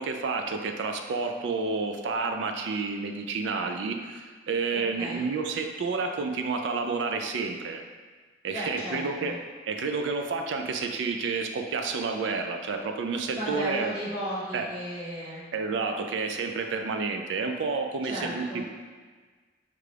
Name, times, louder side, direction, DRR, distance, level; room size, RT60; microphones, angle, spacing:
voice 1, 0.0-7.8 8.4-9.4 9.7-13.9 14.5-14.7 15.5-18.7, right 4 dB, 70° right, 5 dB, 0.4 m, -30 dB
voice 2, 4.7-5.3 8.5-9.3 13.3-15.4 18.1-18.6, equal, 30° right, -13 dB, 0.8 m, -35 dB
4.9 x 2.2 x 3.3 m, 1.4 s
head